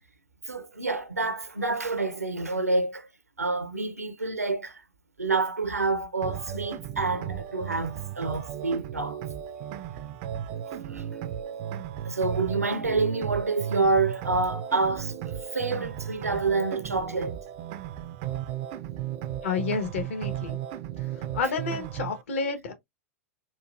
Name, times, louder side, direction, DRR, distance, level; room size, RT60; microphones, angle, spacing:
voice 1, 0.5-3.1 3.4-4.8 5.2-9.2 10.7-11.1 12.0-15.1 15.5-17.4, right 3 dB, 85° right, 0.6 m, -28 dB
sound 1, 6.2-22.2, right 10 dB, 40° right, 0.4 m, -35 dB
voice 2, 19.4-20.6 21.3-22.7, left 4 dB, 60° left, 1.1 m, -29 dB
4.5 x 2.4 x 2.4 m
figure-of-eight pair, 95°, 8 cm